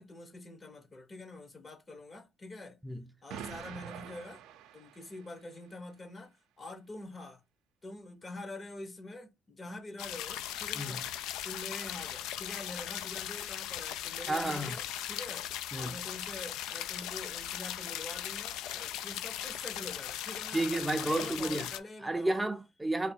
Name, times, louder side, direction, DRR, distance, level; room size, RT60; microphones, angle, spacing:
voice 1, 0.0-2.8 3.2-4.4 4.7-7.4 7.8-11.1 11.4-20.7 21.0-22.5, left 2 dB, 30° left, 0.8 m, -45 dB
Explosion, 3.3-5.5, right 9 dB, 85° right, 0.5 m, -46 dB
sound 1, 10.0-21.8, left 11 dB, 85° left, 0.3 m, -38 dB
voice 2, 14.3-14.8 15.7-15.9 20.5-21.7 22.0-23.1, right 2 dB, 15° right, 0.4 m, -32 dB
3.3 x 2.2 x 4.3 m
cardioid pair, 95°, 0 cm